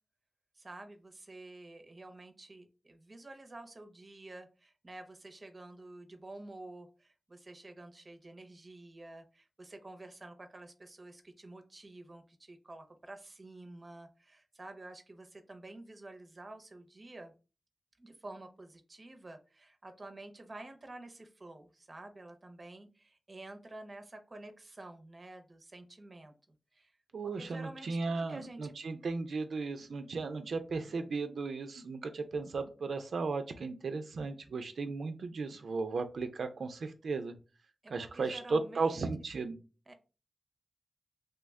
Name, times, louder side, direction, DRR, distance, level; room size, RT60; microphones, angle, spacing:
voice 1, 0.6-17.3 18.0-26.3 26.7-26.9 27.4-28.7 37.8-39.0 39.9-40.0, right 2 dB, 30° right, 6 dB, 0.5 m, -50 dB
voice 2, 27.1-37.3 37.9-39.6, right 4 dB, 80° right, 7 dB, 0.4 m, -35 dB
3.2 x 2.1 x 3.4 m, 0.32 s
wide cardioid pair, 130°, 0 cm